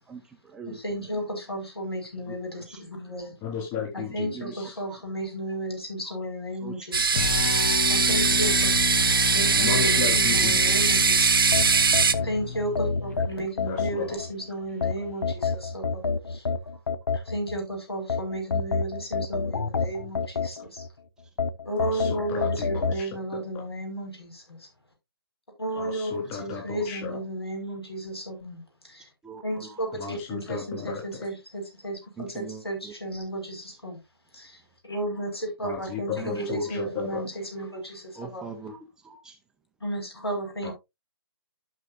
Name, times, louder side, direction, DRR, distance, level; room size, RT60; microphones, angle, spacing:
voice 1, 0.1-1.0 2.3-2.4 2.7-2.8 4.2-5.0 6.1-6.2 6.6-6.9 8.1-8.4 16.7-16.8 29.2-29.8 32.2-32.9 36.2-36.7 38.2-39.4, right 6 dB, 5° right, 0.5 m, -41 dB
voice 2, 0.7-3.3 4.1-7.2 7.9-12.0 12.2-16.0 16.3-16.5 17.1-20.9 21.6-24.7 25.6-29.1 29.4-34.0 34.3-38.5 39.8-40.7, right 1 dB, 80° left, 5.8 m, -33 dB
voice 3, 3.4-4.7 9.5-10.9 13.7-14.2 21.8-23.1 25.8-27.2 29.9-31.0 35.6-37.2 40.6-40.7, left 6 dB, 25° left, 3.7 m, -34 dB
sound 1, 6.9-12.1, right 5 dB, 65° right, 0.9 m, -21 dB
sound 2, 7.1-13.3, left 5 dB, 40° left, 1.2 m, -31 dB
sound 3, 11.5-14.3 14.8-17.6 18.1-20.9 21.4-23.0, left 5 dB, 60° left, 0.8 m, -28 dB
12.5 x 6.3 x 2.6 m
figure-of-eight pair, 140°, 13 cm